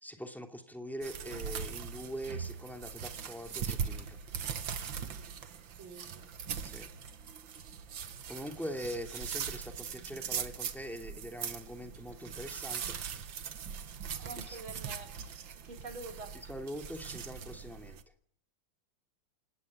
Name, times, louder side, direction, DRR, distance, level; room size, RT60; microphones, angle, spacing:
voice 1, 0.0-4.2 6.6-6.9 8.3-13.0 14.4-14.6 16.3-18.0, equal, ahead, 4 dB, 2.6 m, -42 dB
sound 1, 1.0-18.0, right 7 dB, 70° right, 2.1 m, -41 dB
voice 2, 5.8-6.3 14.2-15.1 15.6-16.4, right 3 dB, 90° right, 4 dB, 4.3 m, -46 dB
28.0 x 18.5 x 9.5 m, 0.70 s
omnidirectional pair, 2.2 m